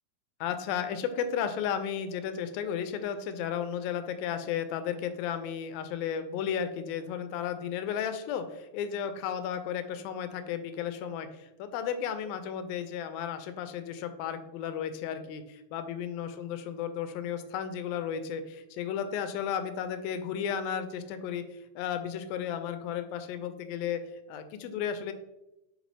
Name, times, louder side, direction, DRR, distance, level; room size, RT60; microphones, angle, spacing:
voice 1, 0.4-24.0 24.3-25.1, left 8 dB, 85° left, 9 dB, 2.4 m, -34 dB
5.8 x 5.0 x 3.3 m, 0.92 s
omnidirectional pair, 4.1 m